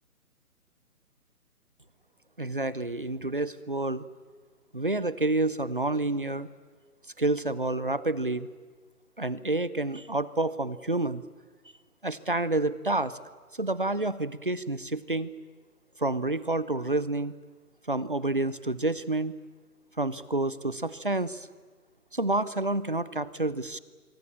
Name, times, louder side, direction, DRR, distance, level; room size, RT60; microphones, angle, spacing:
voice 1, 2.4-4.1 4.7-6.5 7.2-8.5 9.2-11.2 12.0-13.2 13.6-15.3 16.0-17.3 17.9-19.4 20.0-21.5 22.1-23.8, right 2 dB, 35° right, 17 dB, 0.6 m, -29 dB
25.0 x 24.0 x 7.1 m, 1.4 s
hypercardioid pair, 175°, 46 cm